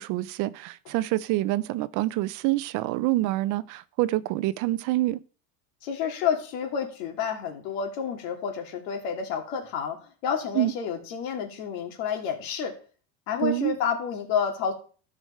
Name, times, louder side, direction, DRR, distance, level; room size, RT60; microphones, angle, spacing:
voice 1, 0.0-5.2 10.5-10.7 13.4-13.8, right 17 dB, 50° right, 0.5 m, -26 dB
voice 2, 5.8-12.7 13.3-14.7, left 7 dB, 80° left, 2.8 m, -29 dB
13.5 x 6.2 x 4.4 m
cardioid pair, 160°, 37 cm